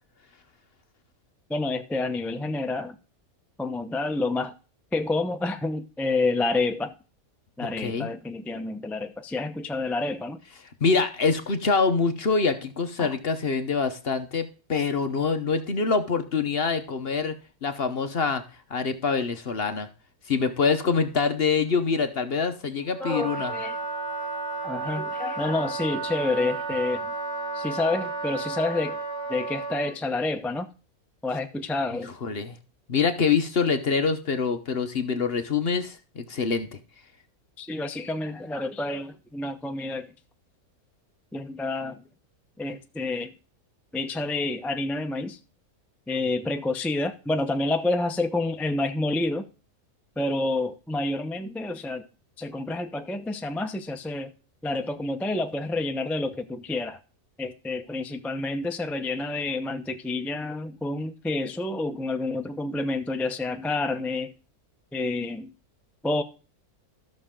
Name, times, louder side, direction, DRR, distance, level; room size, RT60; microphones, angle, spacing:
voice 1, 1.5-3.0 3.6-4.5 4.9-6.9 7.6-10.4 13.0-13.1 23.0-23.8 24.6-27.1 27.5-29.0 29.3-30.7 31.2-32.1 37.6-40.1 41.3-42.0 42.6-43.3 43.9-45.4 46.1-49.5 50.2-52.0 52.4-54.3 54.6-57.0 57.4-64.3 64.9-65.5 66.0-66.2, left 2 dB, ahead, 0.5 m, -29 dB
voice 2, 7.6-8.1 10.8-17.3 17.6-18.4 18.7-19.9 20.3-23.5 32.0-32.6 32.9-36.8, left 5 dB, 45° left, 1.0 m, -25 dB
Wind instrument woodwind instrument, 22.9-30.0, right 3 dB, 80° right, 2.9 m, -32 dB
14.0 x 6.5 x 3.7 m
omnidirectional pair, 1.6 m